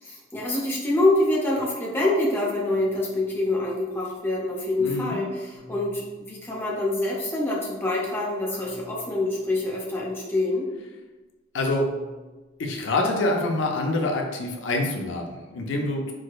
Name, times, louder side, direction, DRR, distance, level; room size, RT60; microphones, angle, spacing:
voice 1, 0.0-10.7, left 2 dB, 10° left, -4 dB, 0.5 m, -26 dB
sound 1, 2.7-3.6 5.5-7.2 8.5-10.0 11.7-12.8, equal, 25° right, 0.7 m, -51 dB
voice 2, 4.8-5.2 11.5-11.9 12.6-16.1, left 2 dB, 80° left, 2 dB, 0.5 m, -26 dB
4.7 x 2.0 x 2.2 m, 1.2 s
head